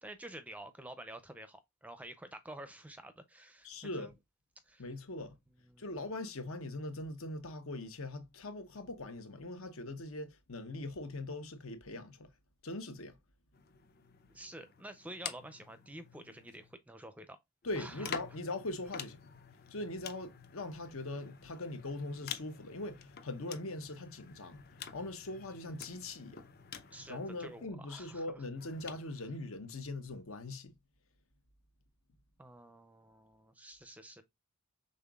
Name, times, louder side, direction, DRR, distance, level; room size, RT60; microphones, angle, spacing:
voice 1, 0.0-4.1 4.7-4.9 5.6-5.8 14.3-17.4 17.8-18.2 26.9-28.4 32.4-34.2, right 1 dB, 5° right, 0.4 m, -49 dB
voice 2, 3.6-4.1 4.8-5.3 5.8-12.3 12.6-13.2 17.6-19.2 19.7-26.4 27.1-30.7, left 2 dB, 75° left, 1.0 m, -41 dB
sound 1, 13.5-16.8 17.6-27.7 28.6-29.1, left 7 dB, 45° left, 0.6 m, -49 dB
5.6 x 3.7 x 2.3 m
head